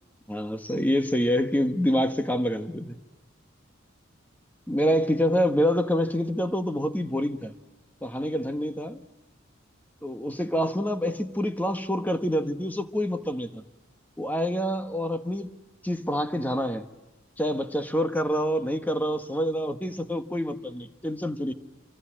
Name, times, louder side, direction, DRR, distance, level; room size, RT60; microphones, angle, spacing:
voice 1, 0.3-3.0 4.7-7.5 8.0-9.0 10.0-13.6 14.2-15.6 15.8-16.9 17.4-21.5, equal, 10° left, 1.3 m, -26 dB
26.5 x 25.5 x 7.6 m
head